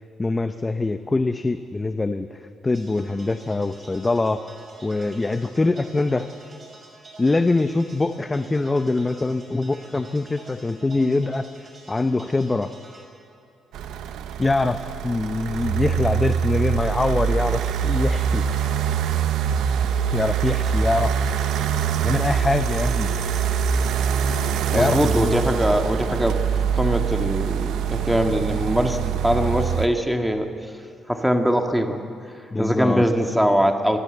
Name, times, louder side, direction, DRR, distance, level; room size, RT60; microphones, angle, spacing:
voice 1, 0.2-4.4 4.8-6.3 7.2-11.5 11.9-12.7 14.4-18.4 20.1-21.1 22.0-23.1 24.7-25.3 32.5-33.0, left 3 dB, 20° left, 9 dB, 0.7 m, -23 dB
sound 1, 2.7-13.0, right 2 dB, 35° right, 5.8 m, -47 dB
sound 2, 13.7-29.9, right 7 dB, 85° right, 1.0 m, -24 dB
voice 2, 24.7-26.4 26.7-30.5 31.1-32.0 32.6-34.0, equal, ahead, 4 dB, 1.8 m, -22 dB
24.0 x 14.0 x 8.0 m, 2.5 s
cardioid pair, 90°, 0 cm